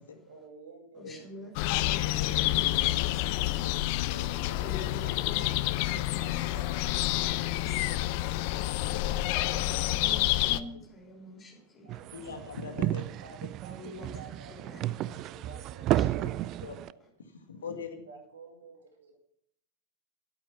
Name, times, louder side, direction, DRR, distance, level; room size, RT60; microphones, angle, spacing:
voice 1, 0.3-1.1 1.4-2.0 2.4-2.8 3.3-4.0 4.5-8.8 9.3-10.2 10.5-10.7 11.8-11.9 13.2-17.0 18.1-19.2, right 3 dB, 65° right, 3 dB, 2.2 m, -52 dB
voice 2, 0.9-3.4 4.6-5.5 5.7-6.4 7.5-8.1 9.9-12.1 13.8-14.2 14.5-15.2 16.0-16.2, left 1 dB, 25° left, 1 dB, 3.2 m, -47 dB
sound 1, 1.6-10.6, left 16 dB, 45° left, 0.5 m, -28 dB
voice 3, 2.0-2.5 2.9-3.0 3.6-4.4 7.5-7.6 7.9-8.0 8.5-9.1 10.7-10.8 12.1-13.0 16.2-16.3 16.6-16.8 17.3-18.0, left 5 dB, 65° left, 4 dB, 1.9 m, -42 dB
sound 2, 11.9-16.9, right 14 dB, 35° right, 0.3 m, -32 dB
11.0 x 8.9 x 5.9 m, 0.72 s
figure-of-eight pair, 90°, 0 cm